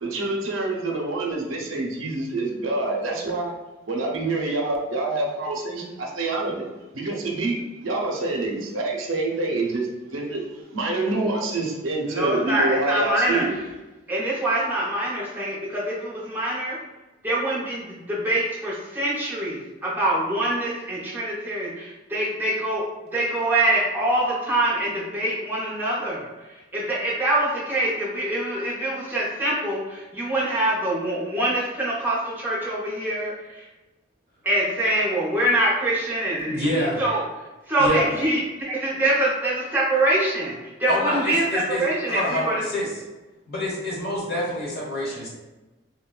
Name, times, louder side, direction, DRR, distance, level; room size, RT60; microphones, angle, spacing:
voice 1, 0.0-3.5 3.9-6.7 6.9-9.9 10.1-10.4 10.7-13.5, right 2 dB, 85° right, 0 dB, 0.6 m, -26 dB
voice 2, 12.1-13.7 14.1-16.8 17.2-22.8 23.1-33.7 34.4-37.2 37.6-42.6, right 1 dB, 10° right, -6 dB, 0.7 m, -25 dB
voice 3, 36.5-37.0 37.8-38.1 40.9-42.9 43.5-45.3, left 1 dB, 50° left, -6 dB, 1.1 m, -27 dB
3.6 x 2.1 x 2.3 m, 1.1 s
head